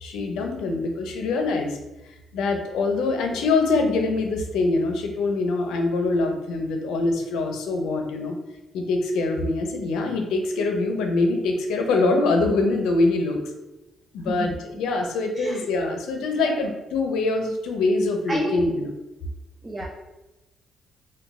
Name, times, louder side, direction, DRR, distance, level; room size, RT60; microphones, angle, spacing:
voice 1, 0.0-1.8 2.0-8.4 8.7-13.4 14.1-18.9, left 3 dB, 85° left, 3 dB, 0.5 m, -24 dB
voice 2, 15.3-15.7 16.5-16.6 18.3-18.6 19.6-19.9, right 2 dB, 20° right, -2 dB, 0.5 m, -29 dB
3.1 x 2.2 x 3.5 m, 1.0 s
cardioid pair, 90°, 0 cm